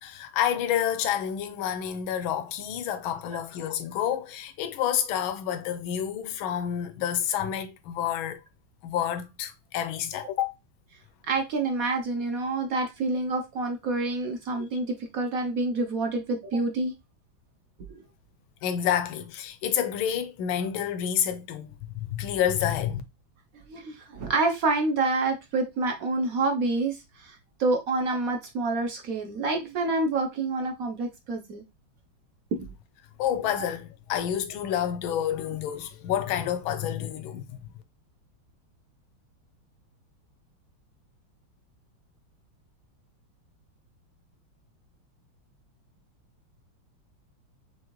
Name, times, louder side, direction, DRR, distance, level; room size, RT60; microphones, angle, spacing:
voice 1, 0.0-8.4 8.8-10.5 14.5-14.6 18.6-21.7 22.1-23.0 33.2-37.6, left 9 dB, 80° left, 1.5 m, -29 dB
voice 2, 11.3-14.9 15.1-16.9 17.9-18.0 23.7-31.6 32.5-32.6, right 3 dB, 60° right, 0.9 m, -27 dB
6.2 x 2.5 x 3.0 m
omnidirectional pair, 2.2 m